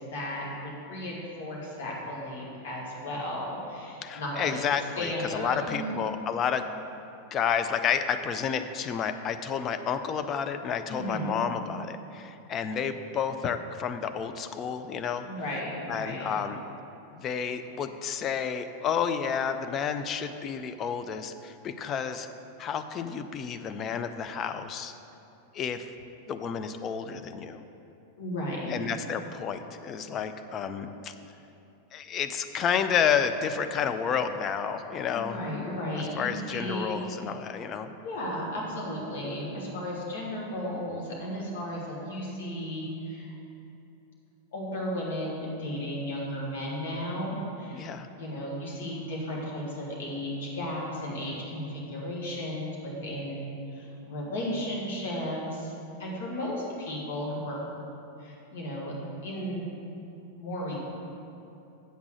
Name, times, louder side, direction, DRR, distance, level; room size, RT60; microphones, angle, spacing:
voice 1, 0.0-4.6 5.0-6.0 10.9-11.4 15.2-16.3 28.2-28.7 35.1-37.0 38.0-43.4 44.5-47.8 48.2-53.5 53.7-55.7 56.0-57.6 58.2-58.9 59.2-59.6 60.4-60.7, equal, 55° left, -3 dB, 2.2 m, -34 dB
voice 2, 4.0-6.7 7.3-15.3 15.9-16.6 17.1-22.3 22.6-24.9 25.5-25.9 26.3-27.6 28.7-31.1 31.9-35.4 36.2-37.9 47.7-48.1, left 7 dB, 30° left, 8 dB, 0.5 m, -30 dB
8.2 x 6.0 x 6.3 m, 2.9 s
figure-of-eight pair, 90°, 0 cm